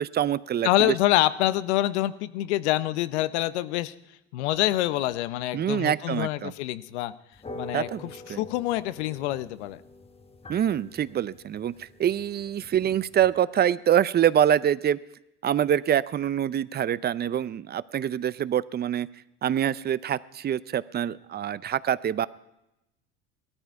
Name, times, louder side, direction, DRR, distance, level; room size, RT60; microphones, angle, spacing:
voice 1, 0.0-0.9 5.5-6.5 7.7-8.4 10.5-15.0 15.4-19.1 19.4-22.3, right 10 dB, 30° right, 18 dB, 0.6 m, -25 dB
voice 2, 0.6-3.9 4.3-7.1 7.5-9.8, left 15 dB, 80° left, 15 dB, 0.8 m, -26 dB
sound 1, 7.3-13.3, left 1 dB, 15° left, 1.2 m, -46 dB
18.0 x 13.5 x 4.6 m, 0.88 s
hypercardioid pair, 80°, 33 cm